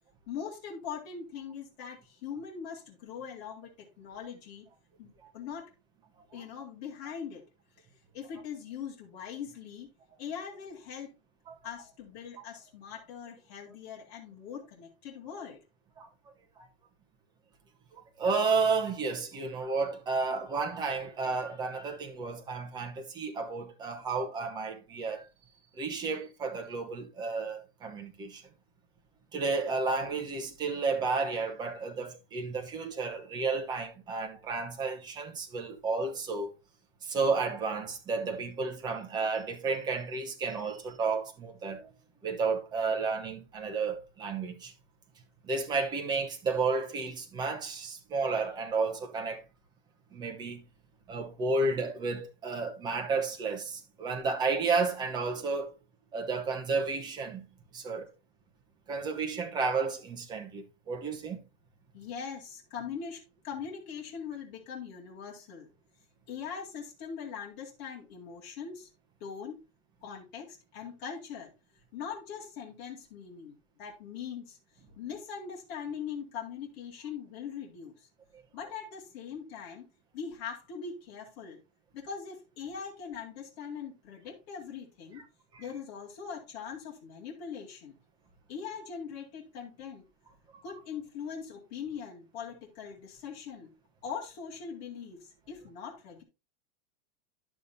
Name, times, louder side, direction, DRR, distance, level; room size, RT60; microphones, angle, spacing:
voice 1, 0.3-4.7 5.0-5.7 6.3-7.4 8.1-9.9 10.2-11.1 11.6-15.6 61.9-65.7 66.3-68.9 69.2-69.7 70.0-71.5 71.9-74.6 75.0-78.1 78.5-79.9 80.1-81.6 81.9-85.2 85.6-88.0 88.5-90.0 90.6-93.7 94.0-96.2, left 7 dB, 40° left, 2.2 m, -41 dB
voice 2, 16.0-16.7 17.9-25.2 25.8-28.4 29.3-36.5 37.0-41.9 42.2-44.7 45.4-49.4 50.1-50.6 51.1-55.7 56.1-57.5 57.7-58.1 58.9-61.4 78.3-78.4 85.5-85.6 90.5-90.6, right 4 dB, 15° right, 0.9 m, -32 dB
11.0 x 6.8 x 2.7 m
supercardioid pair, 170°, 30 cm